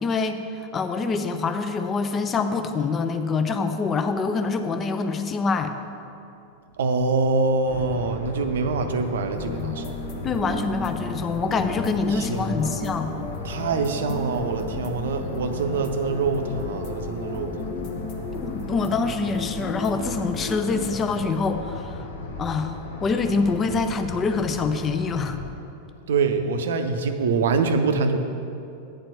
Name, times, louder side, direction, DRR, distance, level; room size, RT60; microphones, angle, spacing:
voice 1, 0.0-5.7 10.2-13.2 18.4-22.0 22.4-25.4, left 4 dB, 25° left, 8 dB, 0.5 m, -25 dB
voice 2, 6.8-9.9 12.1-12.8 13.4-17.6 26.1-28.2, right 4 dB, 60° right, 8 dB, 0.6 m, -25 dB
sound 1, 7.7-25.5, left 3 dB, 65° left, 0.8 m, -36 dB
sound 2, 9.4-21.3, left 2 dB, 45° left, 1.0 m, -35 dB
9.4 x 4.4 x 6.8 m, 2.7 s
figure-of-eight pair, 90°, 0 cm